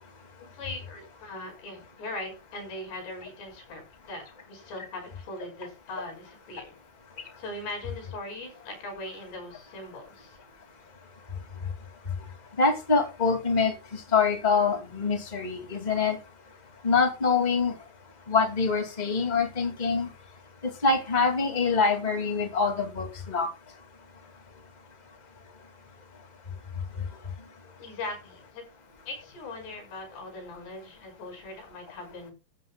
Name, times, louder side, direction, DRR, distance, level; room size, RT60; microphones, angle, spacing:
voice 1, 0.4-6.8 7.4-10.4 27.8-28.6 29.0-32.3, left 2 dB, 85° left, 3 dB, 7.8 m, -40 dB
voice 2, 12.6-16.2 16.8-17.7 18.3-20.1 20.8-23.5, left 4 dB, 15° left, 4 dB, 1.9 m, -25 dB
15.0 x 13.5 x 2.4 m, 0.29 s
omnidirectional pair, 4.7 m